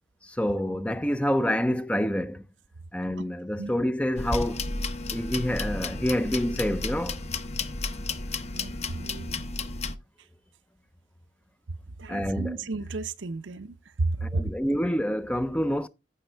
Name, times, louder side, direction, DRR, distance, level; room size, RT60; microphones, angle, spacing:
voice 1, 0.2-2.4 2.9-4.7 5.1-7.2 12.1-12.6 14.2-15.9, equal, 5° left, 0.5 m, -27 dB
sound 1, 4.2-10.0, left 3 dB, 35° left, 0.9 m, -32 dB
voice 2, 8.5-9.5 12.0-14.4, right 3 dB, 85° right, 0.7 m, -32 dB
15.0 x 5.3 x 3.4 m
head